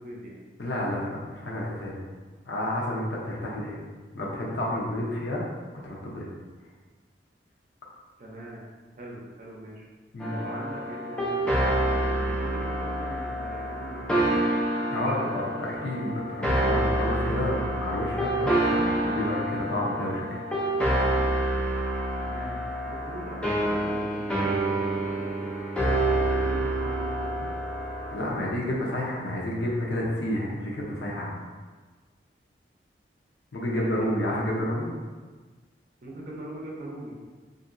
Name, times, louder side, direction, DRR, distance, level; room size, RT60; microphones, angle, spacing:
voice 1, 0.0-0.4 8.2-8.6 9.0-9.9 10.3-15.4 22.2-25.7 26.3-27.5 33.7-34.5 36.0-37.1, right 1 dB, 45° right, -3 dB, 0.6 m, -42 dB
voice 2, 0.6-2.0 2.5-3.8 4.1-5.4 5.8-6.3 10.1-10.4 14.9-20.4 28.1-31.3 33.5-34.9, left 1 dB, 80° left, -3 dB, 0.6 m, -30 dB
sound 1, 10.2-28.2, right 1 dB, 5° left, 0.4 m, -27 dB
2.8 x 2.6 x 2.5 m, 1.4 s
head